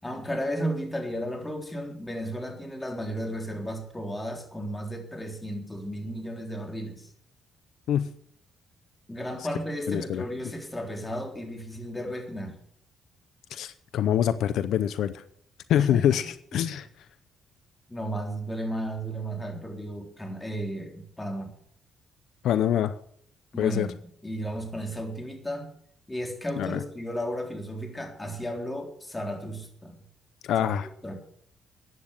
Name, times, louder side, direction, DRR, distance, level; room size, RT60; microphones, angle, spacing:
voice 1, 0.0-7.1 9.1-12.5 15.8-16.2 16.5-16.7 17.9-21.5 23.5-23.9 24.2-25.7 26.1-30.0 30.6-30.7 31.0-31.2, equal, 15° left, 3 dB, 3.7 m, -34 dB
voice 2, 9.9-10.2 13.5-15.2 15.7-16.9 22.4-22.9 23.6-23.9 26.6-26.8 30.4-30.9, left 10 dB, 80° left, 14 dB, 0.7 m, -25 dB
14.5 x 9.6 x 6.7 m, 0.64 s
cardioid pair, 90°, 0 cm